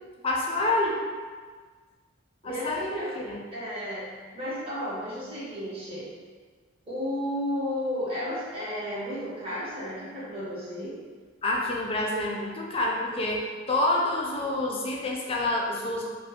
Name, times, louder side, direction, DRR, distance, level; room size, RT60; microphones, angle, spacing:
voice 1, 0.2-1.0 2.4-3.4 11.4-16.1, left 2 dB, 30° left, -2 dB, 0.4 m, -28 dB
voice 2, 2.4-3.1 3.5-4.1 4.3-6.0 6.8-11.0, equal, 30° right, -11 dB, 1.2 m, -33 dB
2.6 x 2.4 x 3.5 m, 1.5 s
head